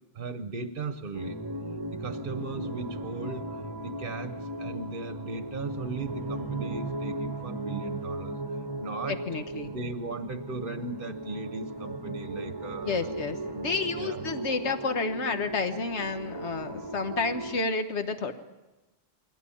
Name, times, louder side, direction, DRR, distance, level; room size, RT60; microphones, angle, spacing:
voice 1, 0.1-1.4 1.9-3.5 3.8-8.4 8.8-9.2 9.5-13.1 13.9-14.5, right 3 dB, 50° right, 9 dB, 1.0 m, -37 dB
sound 1, 1.1-17.6, right 1 dB, 25° right, 0.9 m, -37 dB
voice 2, 9.1-9.7 12.8-18.3, left 4 dB, 85° left, 8 dB, 1.5 m, -30 dB
21.5 x 17.0 x 8.5 m, 1.1 s
omnidirectional pair, 1.1 m